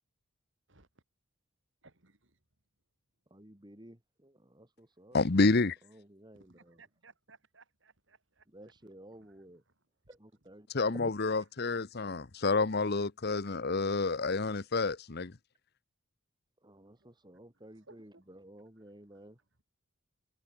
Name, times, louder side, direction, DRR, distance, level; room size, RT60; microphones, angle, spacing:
voice 1, 0.7-1.0 1.8-2.4 6.3-8.7 9.1-9.7 11.6-12.5 16.7-18.3 18.8-18.9 19.1-19.2, right 3 dB, 60° right, 3.2 m, -63 dB
voice 2, 3.3-5.2 5.9-6.8 8.5-9.6 10.2-11.1 16.6-19.4, right 1 dB, 20° right, 2.3 m, -53 dB
voice 3, 5.1-5.8 10.7-15.3, left 3 dB, 50° left, 0.9 m, -29 dB
head